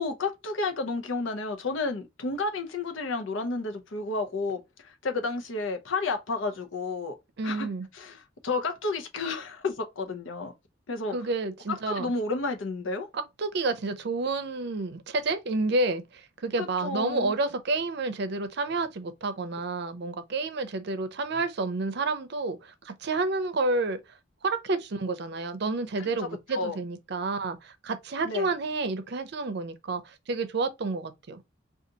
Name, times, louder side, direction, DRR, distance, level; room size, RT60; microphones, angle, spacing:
voice 1, 0.0-7.1 7.4-7.7 7.9-10.5 10.9-11.1 11.7-13.1 16.6-17.3 26.5-26.8 28.2-28.5, left 3 dB, 85° left, 0.7 m, -31 dB
voice 2, 7.4-7.9 11.1-12.1 13.1-24.0 24.4-31.4, right 3 dB, 60° right, 0.5 m, -30 dB
2.7 x 2.4 x 3.7 m
head